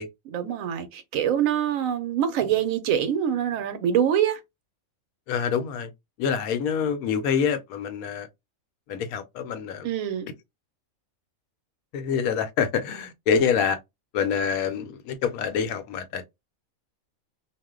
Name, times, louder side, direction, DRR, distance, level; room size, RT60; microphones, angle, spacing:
voice 1, 0.3-4.4 9.8-10.3, right 9 dB, 75° right, 1.0 m, -25 dB
voice 2, 5.3-5.9 6.2-8.3 8.9-9.9 11.9-13.8 14.1-16.3, left 7 dB, 80° left, 1.0 m, -26 dB
2.5 x 2.1 x 3.5 m
omnidirectional pair, 1.5 m